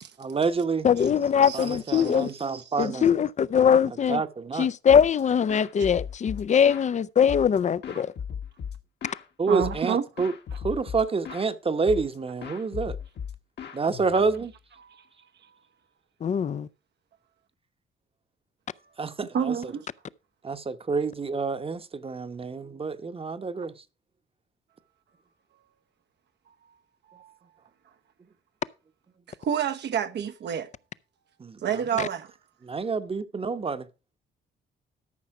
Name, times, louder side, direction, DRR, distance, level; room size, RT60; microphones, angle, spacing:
voice 1, 0.2-0.9 1.5-3.1 4.1-4.7 9.4-10.3 10.6-13.0 13.7-14.5 19.0-19.5 20.4-23.7 31.4-31.6 32.6-33.9, right 4 dB, 30° right, 1.0 m, -28 dB
voice 2, 0.8-2.3 2.8-4.2 4.6-8.1 16.2-16.7, left 8 dB, 35° left, 0.5 m, -22 dB
sound 1, 4.9-5.2 5.5-6.9 7.3-9.3 9.6-9.9 10.2-11.5 11.9-12.2 12.4-14.5, left 7 dB, 60° left, 1.4 m, -37 dB
voice 3, 9.5-10.0 14.8-15.1 15.4-15.5 19.3-19.9 27.1-27.3 29.3-30.7 31.6-32.3, right 8 dB, 60° right, 0.9 m, -29 dB
13.5 x 5.7 x 4.8 m
cardioid pair, 90°, 20 cm